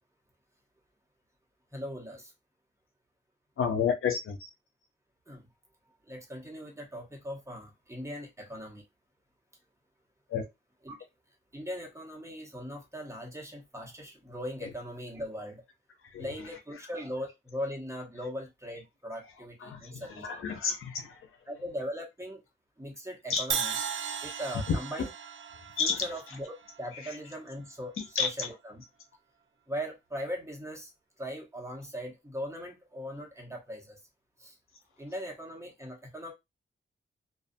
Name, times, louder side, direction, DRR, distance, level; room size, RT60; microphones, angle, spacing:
voice 1, 1.7-2.3 5.3-5.4 6.1-8.8 10.8-11.0 11.5-15.6 16.2-20.3 21.5-22.4 22.8-23.7 24.2-25.1 25.8-26.5 26.8-28.8 29.7-30.9 31.2-34.0 34.4-34.5 35.0-36.3, equal, 15° right, 1.1 m, -39 dB
voice 2, 3.6-4.5 10.3-10.4 14.6-14.7 16.0-16.3 19.6-21.2 23.3-23.4 24.7-24.8 25.8-26.0 26.9-27.2 28.0-28.5, left 6 dB, 85° left, 0.7 m, -31 dB
Crash cymbal, 23.5-27.5, right 7 dB, 65° right, 0.4 m, -36 dB
2.5 x 2.3 x 2.6 m
cardioid pair, 60°, 21 cm